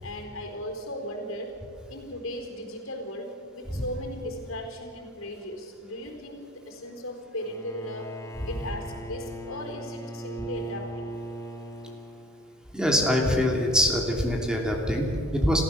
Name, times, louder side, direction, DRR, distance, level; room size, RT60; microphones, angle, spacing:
voice 1, 0.0-1.5 1.9-6.4 6.7-8.1 8.4-11.1 11.9-12.0, equal, 75° left, 4 dB, 4.1 m, -37 dB
Bowed string instrument, 7.4-12.7, right 1 dB, 15° left, 1.8 m, -39 dB
voice 2, 12.7-15.6, equal, 5° right, 0 dB, 2.8 m, -24 dB
29.0 x 15.5 x 7.0 m, 2.7 s
head